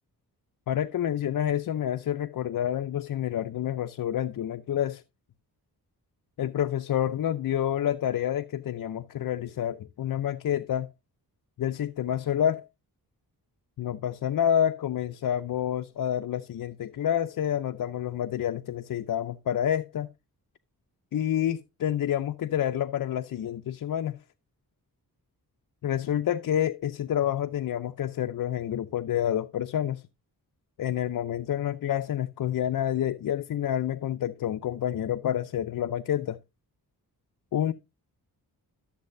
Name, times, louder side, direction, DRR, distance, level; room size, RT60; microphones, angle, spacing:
voice 1, 0.7-5.0 6.4-10.9 11.6-12.6 13.8-20.1 21.1-24.2 25.8-30.0 30.8-36.4 37.5-37.7, left 10 dB, 60° left, 0.5 m, -28 dB
13.0 x 7.2 x 2.6 m
wide cardioid pair, 130°, 38 cm